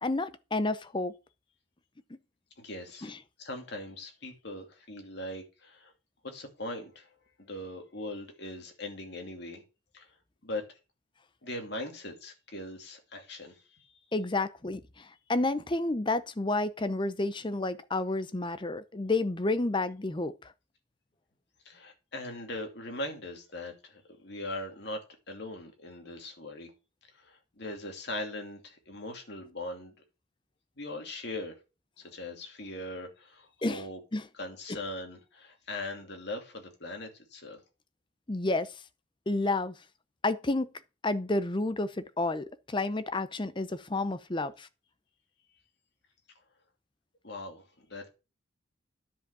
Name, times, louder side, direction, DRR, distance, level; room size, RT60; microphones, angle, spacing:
voice 1, 0.0-1.2 3.0-3.2 14.1-20.5 33.6-33.8 34.1-34.2 38.3-38.7 39.3-39.7 40.2-40.7 41.0-44.7, left 2 dB, 25° left, 0.6 m, -30 dB
voice 2, 2.6-3.1 3.4-5.9 6.2-7.1 7.4-9.6 9.9-10.1 10.4-10.8 11.4-14.0 21.6-26.7 27.1-29.9 30.8-31.6 32.0-34.0 34.3-37.6 47.2-48.1, left 1 dB, 55° left, 2.6 m, -40 dB
10.0 x 5.2 x 6.8 m
head